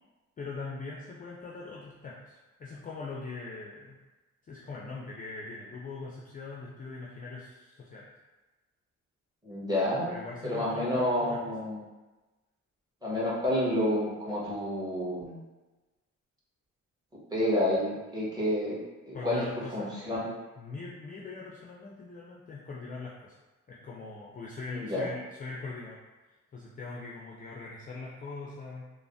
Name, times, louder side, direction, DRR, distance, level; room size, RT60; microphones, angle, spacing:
voice 1, 0.4-4.0 4.4-8.1 10.1-11.4 19.1-19.9 20.6-23.3 23.7-26.0 26.5-28.9, left 3 dB, 30° left, -4 dB, 0.4 m, -41 dB
voice 2, 9.4-11.8 13.0-15.4 17.3-18.8 19.1-19.4 19.7-20.3 24.7-25.0, left 1 dB, 15° right, -7 dB, 1.1 m, -29 dB
3.2 x 2.0 x 2.5 m, 1.2 s
cardioid pair, 90°, 30 cm